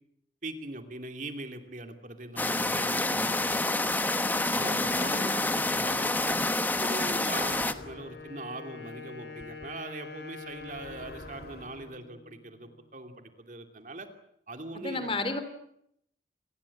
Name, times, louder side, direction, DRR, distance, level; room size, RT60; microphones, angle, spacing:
voice 1, 0.4-3.8 4.5-6.4 6.8-14.1 14.5-15.1, right 2 dB, 45° right, 6 dB, 2.9 m, -41 dB
sound 1, 2.4-7.7, left 2 dB, 10° left, 1.2 m, -28 dB
voice 2, 4.4-5.4 14.7-15.4, left 2 dB, 30° left, 10 dB, 3.2 m, -34 dB
Wind instrument woodwind instrument, 7.2-12.9, left 4 dB, 75° left, 6.4 m, -46 dB
sound 2, 7.4-8.4 9.4-9.7 10.4-12.0, left 2 dB, 60° left, 2.3 m, -49 dB
28.5 x 20.5 x 8.6 m, 0.75 s
head